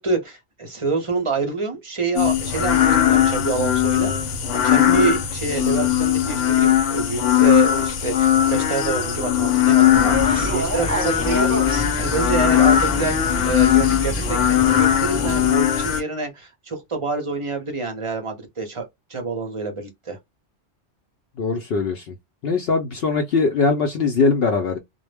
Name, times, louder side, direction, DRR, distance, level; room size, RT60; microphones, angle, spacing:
voice 1, 0.0-20.2, right 4 dB, 35° right, 0.6 m, -27 dB
sound 1, 2.2-16.0, left 11 dB, 90° left, 1.0 m, -19 dB
sound 2, 9.9-15.5, equal, 10° right, 1.0 m, -28 dB
voice 2, 21.4-22.1 22.4-24.8, left 4 dB, 65° left, 0.7 m, -21 dB
2.2 x 2.0 x 3.3 m
omnidirectional pair, 1.2 m